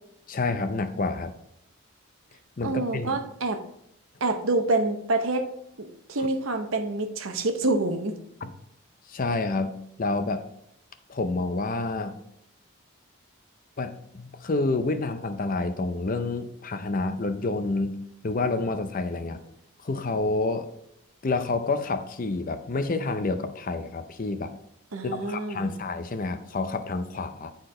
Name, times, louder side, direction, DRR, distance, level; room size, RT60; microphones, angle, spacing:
voice 1, 0.3-1.3 2.6-3.2 8.4-8.5 9.1-9.7 10.0-10.4 11.1-12.2 13.8-18.0 18.2-19.4 19.8-20.7 21.2-24.5 25.0-27.5, left 3 dB, 40° left, 9 dB, 0.5 m, -28 dB
voice 2, 2.6-3.6 4.2-5.5 5.8-8.2 24.9-25.8, right 2 dB, 70° right, 7 dB, 0.8 m, -27 dB
9.6 x 4.4 x 3.8 m, 0.77 s
head